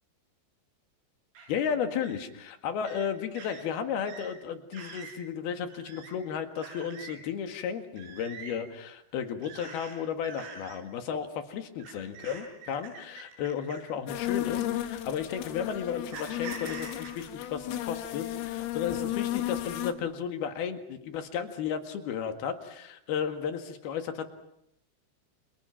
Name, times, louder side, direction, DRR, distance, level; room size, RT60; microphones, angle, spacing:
sound 1, 1.4-1.5 2.0-2.2 2.8-3.1 3.4-3.6 4.1-4.3 4.7-5.2 5.7-6.1 6.6-7.2 8.0-8.6 9.4-9.9 10.2-10.8 11.8-13.9 14.8-15.0 16.1-17.1, right 6 dB, 85° right, 9.7 m, -45 dB
voice 1, 1.5-24.3, left 7 dB, 60° left, 7 dB, 3.3 m, -34 dB
sound 2, 14.1-19.9, left 14 dB, 90° left, 4.2 m, -34 dB
30.0 x 28.5 x 5.9 m, 0.76 s
omnidirectional pair, 5.7 m